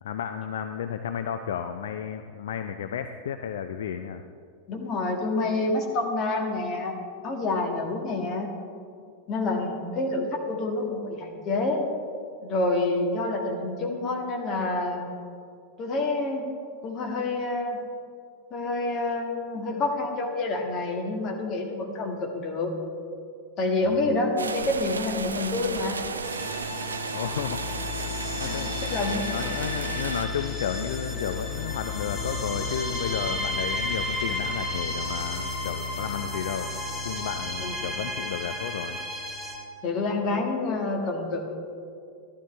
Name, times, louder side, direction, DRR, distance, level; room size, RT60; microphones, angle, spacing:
voice 1, 0.0-4.2 23.8-24.1 27.1-27.6 28.3-29.0 29.2-36.7 37.0-39.0, left 8 dB, 60° left, 8 dB, 0.4 m, -33 dB
voice 2, 4.7-7.0 7.2-8.5 9.3-11.8 12.4-15.1 15.8-16.5 16.8-17.8 18.5-22.7 23.6-26.0 28.5-29.3 37.6-37.8 39.8-41.5, left 2 dB, 35° left, 1 dB, 1.8 m, -28 dB
sound 1, 24.4-30.3, right 4 dB, 75° right, 0.5 m, -34 dB
sound 2, 26.2-39.6, left 2 dB, 15° left, 2.6 m, -32 dB
13.5 x 11.5 x 3.3 m, 2.3 s
figure-of-eight pair, 90°, 0 cm